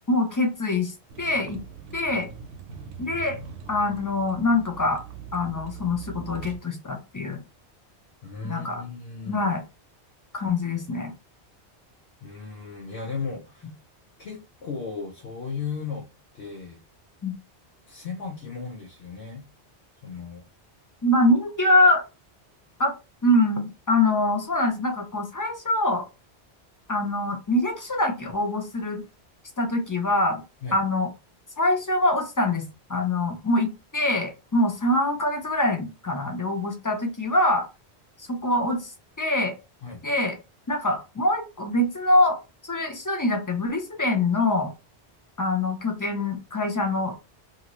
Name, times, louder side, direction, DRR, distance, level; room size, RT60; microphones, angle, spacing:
voice 1, 0.1-1.6 1.9-2.3 3.0-3.4 3.7-5.0 5.3-7.4 8.4-8.8 9.3-9.6 10.3-11.1 17.2-17.3 21.0-22.0 22.8-22.9 23.2-26.1 26.9-29.0 29.6-30.4 30.7-31.1 31.6-37.7 38.2-39.5 40.0-40.3 40.7-42.4 42.6-44.7 45.4-47.1, left 1 dB, 30° left, 4 dB, 0.3 m, -24 dB
Vehicle, 1.1-6.6, right 6 dB, 80° right, 0.9 m, -41 dB
voice 2, 8.2-9.4 12.2-13.7 14.2-16.1 16.3-16.8 17.9-19.5 20.0-20.5 30.6-30.8 39.8-40.0, left 5 dB, 75° left, -1 dB, 1.0 m, -35 dB
2.7 x 2.6 x 2.9 m, 0.28 s
omnidirectional pair, 1.1 m